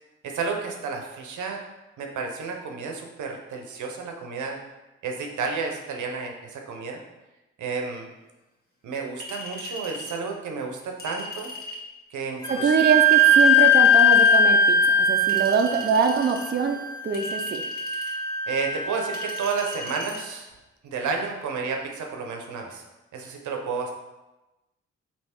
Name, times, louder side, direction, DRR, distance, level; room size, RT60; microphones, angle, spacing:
voice 1, 0.2-1.6 2.0-4.6 5.0-7.0 7.6-8.1 8.8-11.5 12.1-12.8 18.5-20.5 20.8-22.8 23.1-23.9, right 5 dB, 75° right, 2 dB, 0.7 m, -31 dB
Chink clink, 9.2-10.2 11.0-11.8 13.1-14.4 15.3-16.4 17.1-18.2 19.1-20.2, left 2 dB, 30° left, 1.3 m, -38 dB
Wind instrument woodwind instrument, 12.4-19.9, left 1 dB, 15° left, 0.8 m, -21 dB
voice 2, 12.5-17.6, right 5 dB, 35° right, 4 dB, 0.5 m, -24 dB
3.4 x 2.8 x 4.3 m, 1.0 s
supercardioid pair, 50°, 30 cm